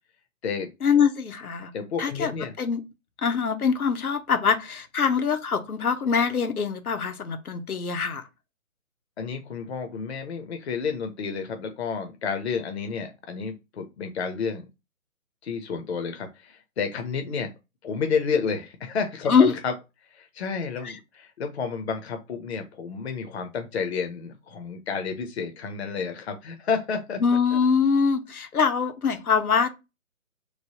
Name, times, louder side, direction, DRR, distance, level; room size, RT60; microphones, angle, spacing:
voice 1, 0.8-1.7 2.0-2.3 2.6-2.8 3.2-8.3 19.3-19.5 20.8-21.0 27.2-29.7, left 6 dB, 90° left, 0.8 m, -23 dB
voice 2, 1.7-2.5 9.2-14.7 15.4-17.5 17.8-19.7 20.1-27.2 27.5-27.6, left 5 dB, 50° left, 0.6 m, -30 dB
3.1 x 2.0 x 2.8 m
figure-of-eight pair, 150°, 42 cm